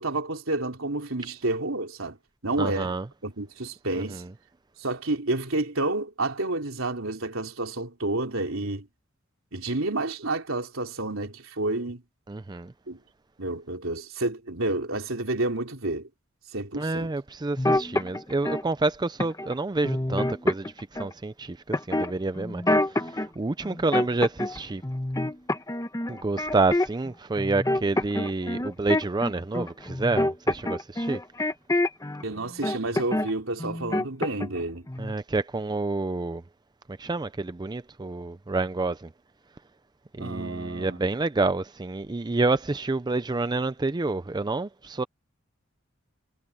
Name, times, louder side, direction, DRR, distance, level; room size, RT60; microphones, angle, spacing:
voice 1, 0.0-2.2 2.4-2.9 3.2-4.2 4.8-8.9 9.5-12.0 12.9-13.0 13.4-16.1 16.5-17.1 32.2-34.8 40.2-41.0, right 2 dB, 75° right, 3.7 m, -30 dB
voice 2, 2.6-3.1 3.9-4.3 12.3-12.7 16.8-24.8 26.1-31.2 35.0-36.4 36.9-39.1 40.1-45.0, right 3 dB, 20° right, 0.5 m, -28 dB
sound 1, 17.6-18.6 19.2-19.5 19.8-21.1 21.7-23.3 23.6-24.6 24.8-27.1 27.4-32.2 32.6-33.3 33.6-34.6 34.9-35.1, left 1 dB, 15° left, 1.3 m, -26 dB
head